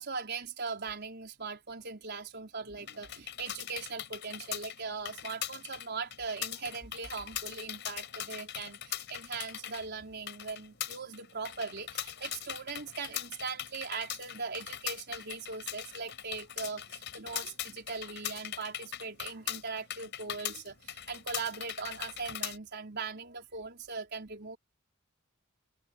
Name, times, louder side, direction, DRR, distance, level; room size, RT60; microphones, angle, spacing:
voice 1, 0.0-24.6, right 4 dB, 55° right, 4.4 m, -40 dB
sound 1, 2.8-22.6, left 11 dB, 60° left, 5.0 m, -41 dB
head